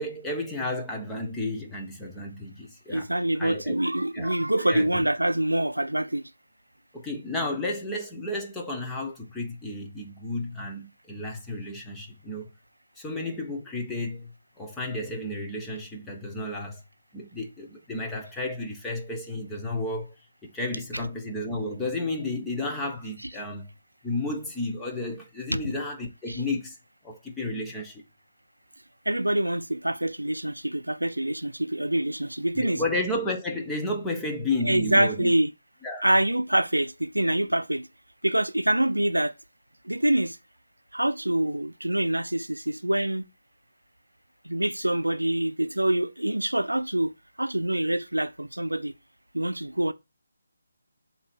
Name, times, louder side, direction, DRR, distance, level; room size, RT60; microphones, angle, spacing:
voice 1, 0.0-3.1 3.4-3.8 4.1-5.0 6.9-12.5 13.0-14.3 14.6-16.8 17.1-20.1 20.5-23.7 24.0-26.8 27.0-28.0 32.5-35.3 35.8-36.0, left 2 dB, 10° left, 1.1 m, -32 dB
voice 2, 2.9-6.2 25.5-25.6 26.3-26.4 29.1-32.8 34.6-35.5 36.0-37.9 38.2-39.3 39.8-40.4 40.9-43.2 44.4-48.9 49.3-49.9, right 1 dB, 90° right, 0.6 m, -25 dB
7.7 x 3.0 x 6.0 m
figure-of-eight pair, 150°, 0 cm